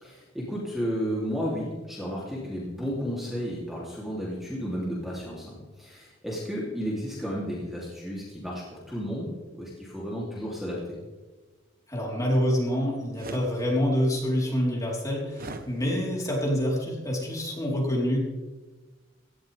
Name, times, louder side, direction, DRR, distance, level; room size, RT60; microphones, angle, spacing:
voice 1, 0.0-11.0, equal, ahead, -5 dB, 3.1 m, -33 dB
voice 2, 11.9-18.2, equal, 20° left, -3 dB, 4.0 m, -26 dB
sound 1, 13.1-13.5 15.3-15.7, right 2 dB, 50° right, 1.1 m, -38 dB
17.5 x 13.5 x 3.5 m, 1.2 s
head